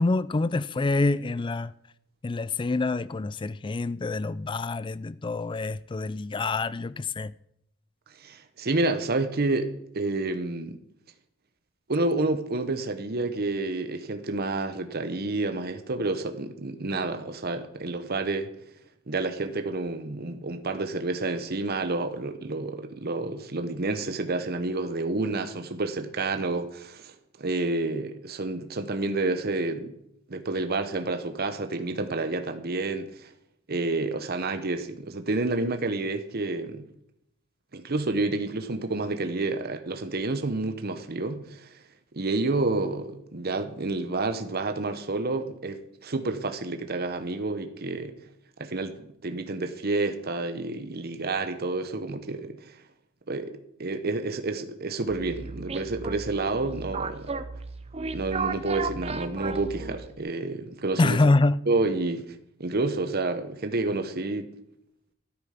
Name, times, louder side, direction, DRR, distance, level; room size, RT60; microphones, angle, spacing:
voice 1, 0.0-1.7 2.2-7.3 61.0-61.6, left 3 dB, 25° left, 0.4 m, -26 dB
voice 2, 8.2-10.8 11.9-18.5 19.1-30.0 30.3-33.3 33.7-36.9 37.7-41.8 42.1-48.1 48.6-52.8 53.3-57.3 58.1-61.2 61.7-64.5, right 2 dB, 50° right, 1.0 m, -29 dB
sound 1, 55.1-60.2, right 4 dB, 30° right, 0.7 m, -34 dB
13.0 x 8.4 x 5.8 m
head